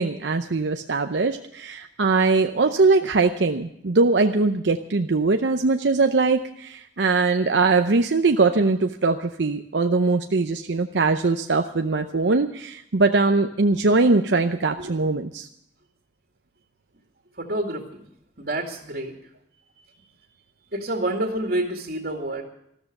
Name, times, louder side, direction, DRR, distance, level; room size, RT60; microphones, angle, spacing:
voice 1, 0.0-15.5, right 3 dB, 80° right, 6 dB, 0.7 m, -21 dB
voice 2, 17.4-17.8 18.4-19.1 20.7-22.4, right 1 dB, 55° right, 2 dB, 2.2 m, -27 dB
14.0 x 13.5 x 6.6 m, 0.74 s
head